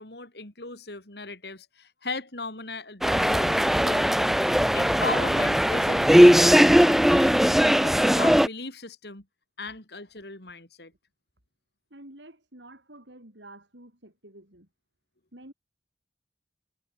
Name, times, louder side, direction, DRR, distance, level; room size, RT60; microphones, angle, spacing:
voice 1, 0.0-4.3 4.7-7.5 7.8-9.2 9.6-10.9, left 3 dB, 65° left, 3.8 m, -38 dB
sound 1, 3.0-8.5, equal, ahead, 0.4 m, -19 dB
voice 2, 11.9-14.7 15.3-15.5, right 1 dB, 80° right, 7.8 m, -49 dB
head